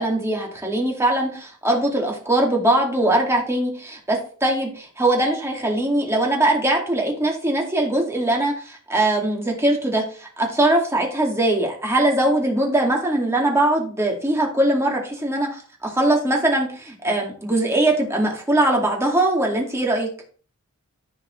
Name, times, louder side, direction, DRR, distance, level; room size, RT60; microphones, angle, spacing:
voice 1, 0.0-20.1, right 1 dB, 15° right, 0 dB, 2.3 m, -21 dB
14.5 x 5.0 x 3.2 m, 0.42 s
head